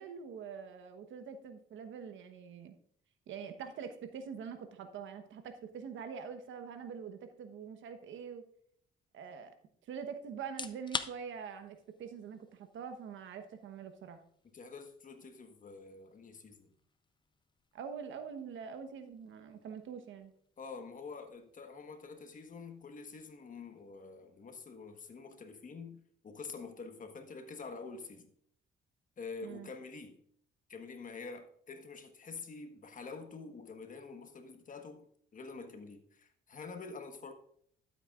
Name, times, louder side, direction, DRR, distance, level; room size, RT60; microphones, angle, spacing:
voice 1, 0.0-2.7 3.3-8.4 9.1-9.5 9.9-14.2 17.7-20.3 29.4-29.7, right 6 dB, 80° right, 1.1 m, -44 dB
sound 1, 10.4-25.3, left 4 dB, 25° left, 0.6 m, -50 dB
voice 2, 14.5-16.7 20.6-28.3 29.2-30.2 30.7-37.3, left 4 dB, 40° left, 1.3 m, -47 dB
12.5 x 8.1 x 2.4 m
cardioid pair, 90°, 20 cm